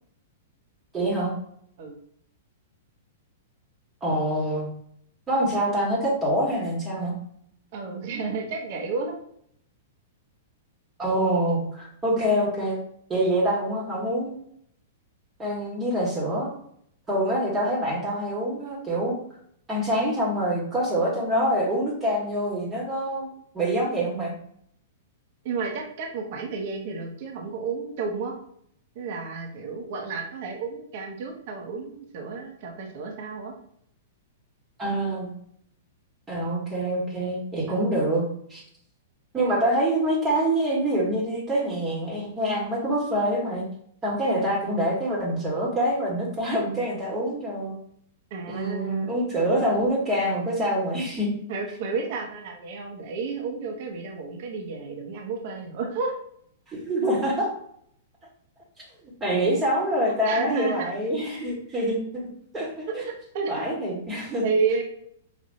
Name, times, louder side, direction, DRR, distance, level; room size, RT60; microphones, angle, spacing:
voice 1, 0.9-1.3 4.0-4.7 5.3-7.1 11.0-12.8 13.1-14.4 15.4-16.5 17.1-19.2 19.7-23.3 23.5-24.3 34.8-35.3 36.3-38.2 38.5-38.6 39.3-43.7 44.0-47.7 48.5-51.3 56.7-57.5 59.0-63.0 63.5-64.4, right 1 dB, 20° right, -5 dB, 1.4 m, -25 dB
voice 2, 7.7-9.2 25.4-28.4 28.9-33.5 37.7-37.8 48.3-49.1 51.5-56.1 60.2-60.9 63.0-63.5 64.4-64.9, right 4 dB, 55° right, 1 dB, 0.9 m, -31 dB
5.2 x 2.6 x 2.6 m, 0.67 s
hypercardioid pair, 110°, 0 cm